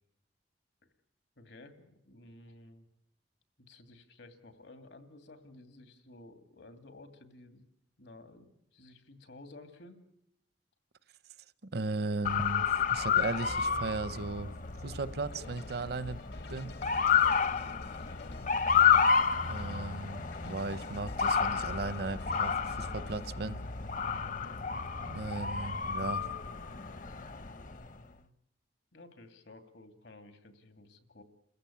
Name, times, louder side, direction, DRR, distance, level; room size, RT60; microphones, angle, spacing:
voice 1, 1.4-2.9 3.6-7.7 8.0-10.0 17.0-18.5 23.8-24.6 27.3-28.3 28.9-31.2, left 2 dB, 80° left, 2.5 m, -54 dB
voice 2, 11.7-12.7 12.9-16.2 16.5-16.8 19.4-23.6 25.1-26.3, right 3 dB, 65° right, 0.8 m, -36 dB
Motor vehicle (road) / Siren, 12.2-27.8, left 6 dB, 50° left, 0.8 m, -30 dB
sound 1, 15.3-23.3, left 4 dB, 65° left, 1.2 m, -52 dB
28.5 x 15.0 x 8.6 m
head